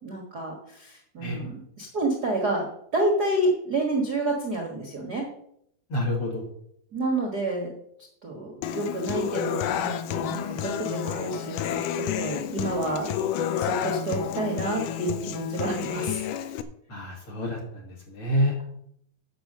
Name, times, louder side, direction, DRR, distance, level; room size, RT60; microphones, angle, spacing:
voice 1, 0.0-2.7 2.9-5.3 6.9-7.7 8.2-13.1 13.6-16.2, right 2 dB, 70° right, 1 dB, 0.9 m, -29 dB
voice 2, 5.9-6.4 16.9-17.6 17.8-18.6, equal, 45° left, 0 dB, 2.0 m, -27 dB
Human voice / Acoustic guitar, 8.6-16.6, left 9 dB, 80° left, 1.9 m, -30 dB
9.3 x 6.7 x 6.6 m, 0.71 s
omnidirectional pair, 4.5 m